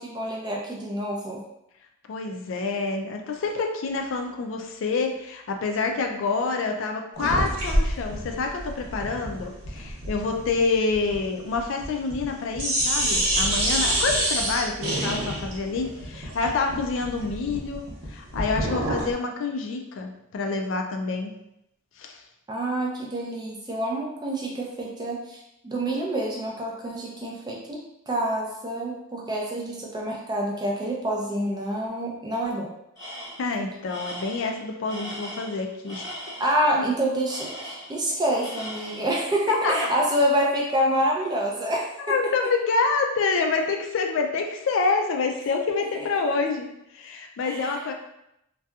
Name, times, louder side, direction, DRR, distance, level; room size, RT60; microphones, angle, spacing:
voice 1, 0.0-1.4 22.5-27.8 28.1-32.7 36.4-42.1 47.4-47.8, right 1 dB, 20° right, -2 dB, 0.3 m, -27 dB
voice 2, 2.1-21.3 22.0-22.2 33.4-36.1 36.7-36.8 39.5-39.9 42.0-47.9, left 4 dB, 65° left, 3 dB, 0.3 m, -27 dB
sound 1, 7.2-12.3 12.6-19.1, right 1 dB, 80° right, 0.9 m, -27 dB
Tools, 33.0-33.5 33.9-36.6 37.3-38.1 38.4-39.2, equal, 15° left, 0.8 m, -39 dB
2.7 x 2.2 x 2.3 m, 0.83 s
head